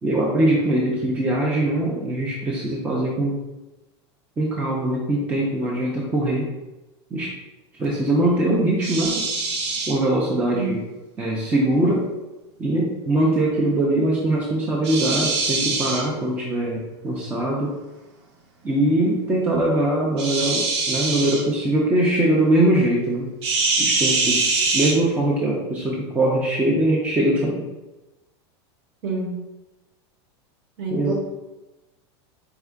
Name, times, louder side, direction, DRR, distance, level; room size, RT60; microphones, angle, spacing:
voice 1, 0.0-3.4 4.4-6.5 7.1-7.3 7.8-9.3 9.9-10.8 11.2-12.1 12.6-17.7 18.6-23.3 23.8-24.4 24.7-27.6 30.9-31.1, right 1 dB, 10° right, -3 dB, 0.4 m, -22 dB
sound 1, 8.8-10.0 14.8-16.1 20.2-21.4 23.4-24.9, right 3 dB, 85° right, 1.0 m, -23 dB
voice 2, 29.0-29.4 30.8-31.1, right 3 dB, 40° right, 0 dB, 1.0 m, -27 dB
4.4 x 2.4 x 3.5 m, 1.1 s
supercardioid pair, 160°, 14 cm